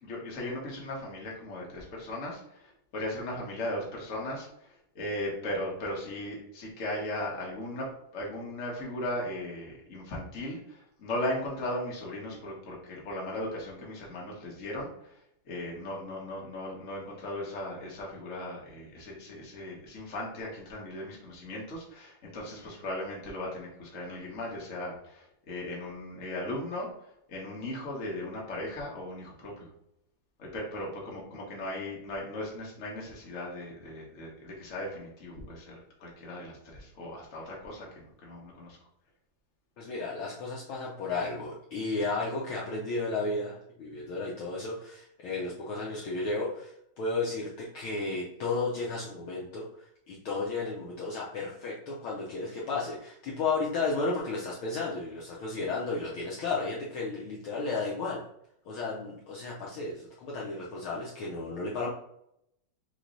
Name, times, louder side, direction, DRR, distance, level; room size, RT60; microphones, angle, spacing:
voice 1, 0.0-15.1 15.5-26.9 27.3-29.7 30.4-38.8, left 1 dB, 45° left, -3 dB, 1.0 m, -37 dB
voice 2, 39.8-58.2 58.7-61.9, left 3 dB, 85° left, -4 dB, 1.1 m, -33 dB
4.2 x 3.2 x 3.9 m, 0.76 s
omnidirectional pair, 3.3 m